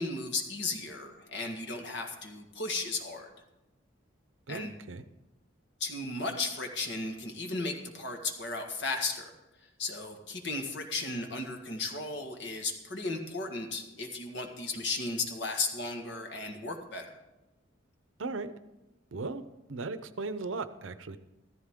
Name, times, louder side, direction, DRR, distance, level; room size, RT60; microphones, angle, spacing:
voice 1, 0.0-3.3 4.5-4.7 5.8-9.3 9.8-17.2, left 3 dB, 60° left, 4 dB, 1.7 m, -35 dB
voice 2, 4.5-5.0 18.2-18.5 19.1-19.4 19.7-21.2, right 3 dB, 80° right, 12 dB, 0.7 m, -37 dB
14.5 x 13.5 x 3.7 m, 1.0 s
head